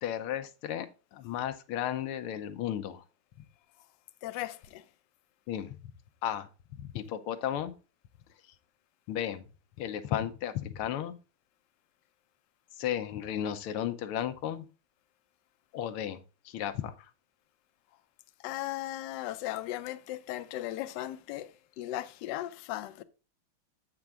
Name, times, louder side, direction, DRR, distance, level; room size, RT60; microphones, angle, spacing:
voice 1, 0.0-3.0 5.5-5.8 6.2-7.7 9.1-9.4 9.8-11.1 12.8-14.7 15.7-17.1, left 10 dB, 90° left, 1.7 m, -34 dB
voice 2, 4.2-4.8 18.4-23.0, left 14 dB, 70° left, 1.1 m, -37 dB
7.7 x 5.9 x 3.5 m
omnidirectional pair, 2.3 m